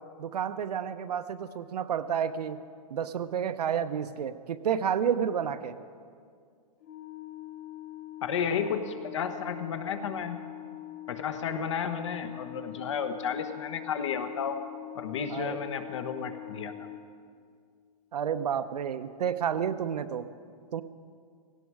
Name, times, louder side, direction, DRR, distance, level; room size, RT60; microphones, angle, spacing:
voice 1, 0.0-2.6 2.9-5.8 15.3-15.6 18.1-20.3 20.7-20.8, right 8 dB, 75° right, 10 dB, 0.9 m, -30 dB
Organ, 6.8-17.7, left 14 dB, 25° left, 0.6 m, -43 dB
voice 2, 8.2-10.4 11.1-14.6 14.9-16.9, left 7 dB, 45° left, 8 dB, 1.2 m, -32 dB
17.5 x 17.0 x 4.8 m, 2.2 s
hypercardioid pair, 175°, 21 cm